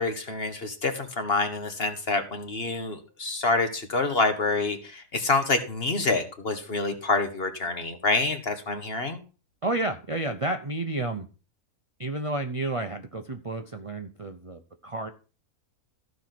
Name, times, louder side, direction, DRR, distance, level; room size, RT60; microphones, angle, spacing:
voice 1, 0.0-9.2, left 3 dB, 40° left, 7 dB, 1.6 m, -27 dB
voice 2, 9.6-11.3 12.0-15.1, right 2 dB, 30° right, 6 dB, 0.6 m, -31 dB
14.5 x 5.3 x 6.0 m, 0.35 s
omnidirectional pair, 1.6 m